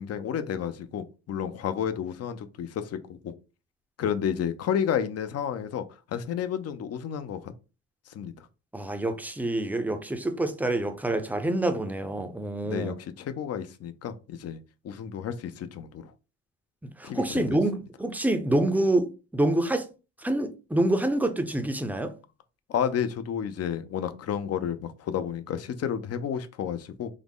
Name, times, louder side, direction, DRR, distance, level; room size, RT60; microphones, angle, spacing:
voice 1, 0.0-3.3 4.0-7.4 8.1-8.5 12.6-14.6 14.8-16.1 17.0-17.6 22.7-27.1, left 8 dB, 55° left, 0.6 m, -31 dB
voice 2, 8.7-12.9 16.8-19.9 20.2-22.1, right 1 dB, 5° right, 0.5 m, -27 dB
3.7 x 2.0 x 3.6 m
cardioid pair, 90°, 30 cm